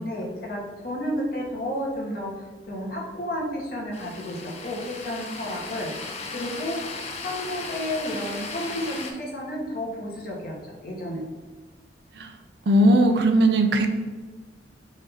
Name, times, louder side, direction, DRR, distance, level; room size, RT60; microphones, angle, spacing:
voice 1, 0.0-6.1 6.3-6.8 7.2-11.2, equal, 50° left, -3 dB, 1.2 m, -32 dB
sound 1, 3.9-9.1, left 3 dB, 35° left, 0.5 m, -36 dB
voice 2, 12.7-13.9, right 1 dB, 65° right, 6 dB, 0.5 m, -18 dB
5.0 x 2.6 x 4.0 m, 1.3 s
head